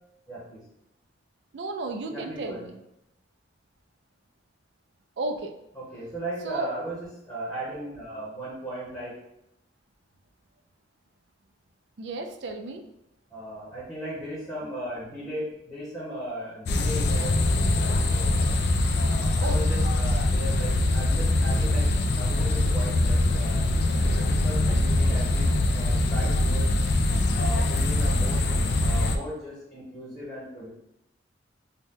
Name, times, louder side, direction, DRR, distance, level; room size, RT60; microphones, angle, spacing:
voice 1, 0.3-0.6 2.1-2.7 5.7-9.2 13.3-18.4 19.0-21.9 22.1-23.6 23.9-26.7 27.3-28.5 28.8-30.7, right 1 dB, 15° left, -8 dB, 0.9 m, -37 dB
voice 2, 1.5-2.7 5.2-5.5 6.4-6.7 12.0-12.8 19.4-19.6, right 3 dB, 65° right, 5 dB, 0.4 m, -33 dB
sound 1, 16.7-29.2, left 2 dB, 60° left, 0.3 m, -23 dB
2.8 x 2.1 x 3.6 m, 0.83 s
head